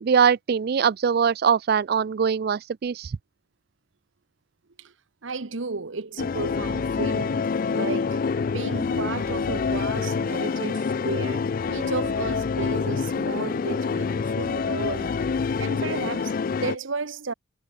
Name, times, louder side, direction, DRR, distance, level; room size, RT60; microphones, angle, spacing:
voice 1, 0.0-3.2, right 7 dB, 50° right, 0.3 m, -22 dB
voice 2, 5.2-15.2 15.6-17.3, right 3 dB, 65° right, 1.0 m, -33 dB
sound 1, 6.2-16.8, left 5 dB, 40° left, 0.3 m, -26 dB
head